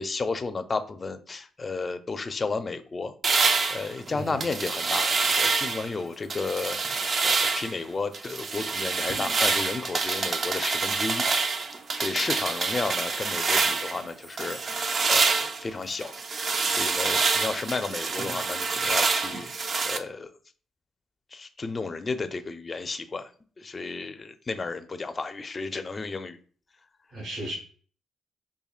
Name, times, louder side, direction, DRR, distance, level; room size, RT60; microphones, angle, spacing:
voice 1, 0.0-3.1 3.7-11.2 12.0-14.6 15.1-16.1 16.7-20.3 21.3-23.3 23.6-26.4, left 4 dB, 30° left, 0.4 m, -33 dB
sound 1, 3.2-5.9 6.3-7.8 8.1-14.0 14.4-20.0, right 4 dB, 45° right, 0.4 m, -26 dB
voice 2, 4.1-4.4 27.1-27.5, right 1 dB, 70° right, 1.3 m, -36 dB
5.0 x 2.7 x 2.3 m
cardioid pair, 90°, 0 cm